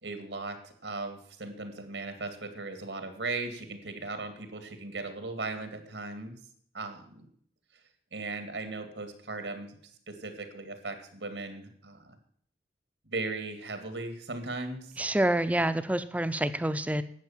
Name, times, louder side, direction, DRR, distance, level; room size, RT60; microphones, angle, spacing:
voice 1, 0.0-6.3 6.7-7.3 8.1-9.8 10.1-12.2 13.1-15.0, right 3 dB, 90° right, 8 dB, 2.3 m, -37 dB
voice 2, 15.0-17.0, right 1 dB, 10° right, 12 dB, 0.5 m, -27 dB
11.5 x 8.5 x 7.4 m, 0.63 s
head